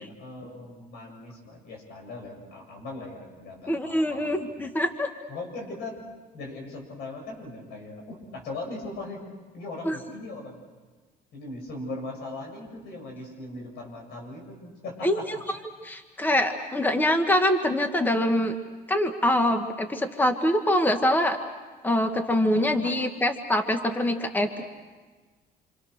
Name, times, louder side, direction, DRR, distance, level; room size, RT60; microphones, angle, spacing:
voice 1, 0.0-4.3 4.6-4.7 5.3-6.0 6.3-9.2 9.5-10.6 11.3-15.2 22.5-22.9, left 2 dB, 75° left, 2 dB, 7.5 m, -39 dB
voice 2, 3.7-5.1 9.8-10.0 15.0-15.1 15.8-18.5 18.9-21.4 21.8-24.6, left 1 dB, 10° left, 6 dB, 1.5 m, -24 dB
28.5 x 26.0 x 6.6 m, 1.4 s
cardioid pair, 110°, 17 cm